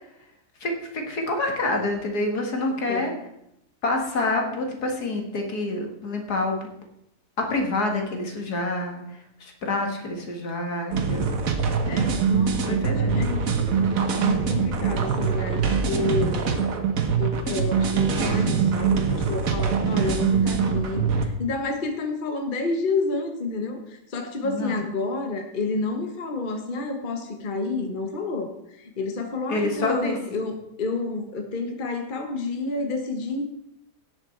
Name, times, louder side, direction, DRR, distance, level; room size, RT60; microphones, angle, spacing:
voice 1, 0.6-3.1 3.8-6.7 7.4-11.3 12.7-13.3 24.4-24.7 29.5-30.2, left 2 dB, 70° left, 2 dB, 2.3 m, -27 dB
voice 2, 2.7-3.2 11.9-13.5 14.1-16.6 17.2-33.4, left 3 dB, 35° left, 4 dB, 1.2 m, -30 dB
sound 1, 10.9-21.3, right 6 dB, 55° right, 1.5 m, -23 dB
17.0 x 6.4 x 4.5 m, 0.78 s
omnidirectional pair, 1.8 m